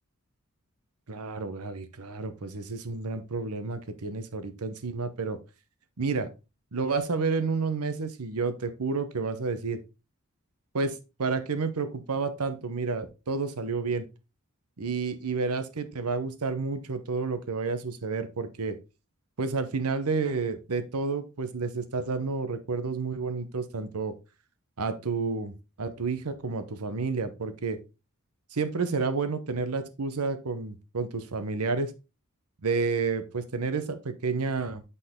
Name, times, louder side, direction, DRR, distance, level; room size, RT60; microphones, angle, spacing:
voice 1, 1.1-5.4 6.0-6.3 6.7-9.8 10.7-14.1 14.8-18.8 19.4-24.1 24.8-25.5 25.8-27.8 28.5-31.9 32.6-34.8, right 4 dB, 90° right, 10 dB, 0.9 m, -30 dB
7.9 x 4.1 x 3.6 m, 0.29 s
head